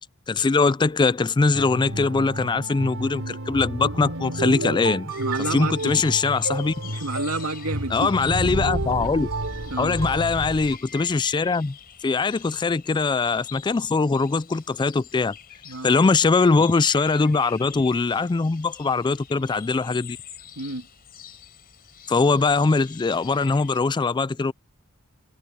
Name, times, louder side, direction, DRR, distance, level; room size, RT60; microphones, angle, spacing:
voice 1, 0.3-5.1 5.5-6.7 7.9-9.3 9.8-11.8 12.0-15.3 15.8-20.2 22.1-24.5, left 4 dB, 20° left, 0.3 m, -22 dB
sound 1, 1.5-10.8, right 1 dB, 65° right, 3.6 m, -30 dB
sound 2, 5.1-23.8, left 9 dB, 45° left, 4.4 m, -45 dB
voice 2, 5.1-6.0 6.8-8.1 9.7-10.0 15.6-15.9 20.6-20.9, right 2 dB, 85° right, 2.8 m, -30 dB
head